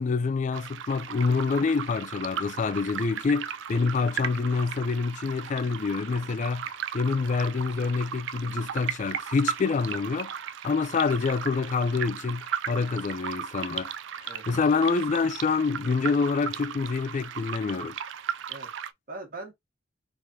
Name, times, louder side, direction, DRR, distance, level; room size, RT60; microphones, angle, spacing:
voice 1, 0.0-6.7 6.9-10.3 10.6-13.9 14.2-18.0, left 4 dB, 40° left, 0.4 m, -27 dB
sound 1, 0.5-18.9, right 8 dB, 70° right, 0.3 m, -36 dB
voice 2, 14.3-14.7 18.5-19.5, right 2 dB, 50° right, 1.3 m, -42 dB
3.6 x 3.2 x 2.7 m
head